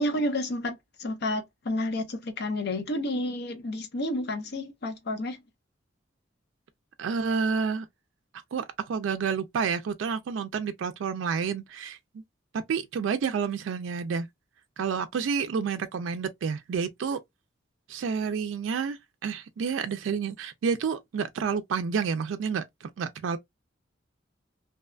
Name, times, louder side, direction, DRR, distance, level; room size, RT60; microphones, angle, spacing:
voice 1, 0.0-5.4, left 1 dB, 60° left, 0.6 m, -30 dB
voice 2, 7.0-7.9 8.5-12.2 12.7-14.3 14.8-17.2 17.9-23.4, right 6 dB, 80° right, 0.3 m, -29 dB
2.7 x 2.2 x 2.3 m
head